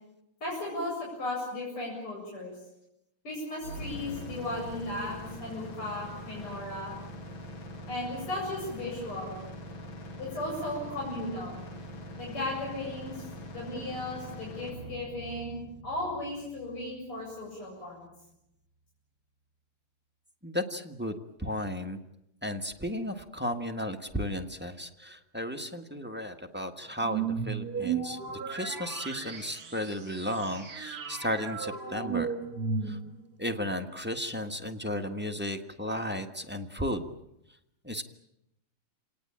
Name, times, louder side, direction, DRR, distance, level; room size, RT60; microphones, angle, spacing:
voice 1, 0.4-2.5 3.2-6.9 7.9-9.4 10.2-11.6 12.2-13.2 13.5-18.1, left 2 dB, 85° left, -3 dB, 8.6 m, -36 dB
sound 1, 3.6-17.5, equal, 65° left, 2.9 m, -43 dB
voice 2, 20.4-22.0 22.4-28.2 28.4-32.3 32.8-33.0 33.4-37.1 37.8-38.0, left 1 dB, 5° right, 6 dB, 1.3 m, -34 dB
sound 2, 27.0-33.3, right 6 dB, 50° right, 3.0 m, -35 dB
28.0 x 18.5 x 8.8 m, 0.82 s
omnidirectional pair, 2.4 m